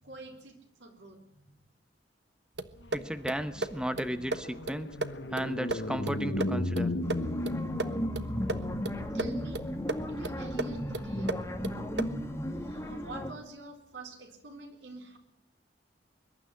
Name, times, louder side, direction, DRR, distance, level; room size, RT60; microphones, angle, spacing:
voice 1, 0.0-1.5 9.1-9.6 10.1-11.4 12.5-15.2, right 2 dB, 90° right, 4 dB, 4.0 m, -47 dB
sound 1, 2.6-12.3, right 2 dB, 70° right, 1.2 m, -38 dB
sound 2, 2.9-12.5, left 1 dB, 70° left, 1.3 m, -37 dB
voice 2, 2.9-4.9 5.3-6.9, equal, 5° right, 11 dB, 0.9 m, -34 dB
sound 3, 7.0-13.3, equal, 15° left, 2.2 m, -35 dB
22.0 x 12.0 x 10.0 m, 0.80 s
head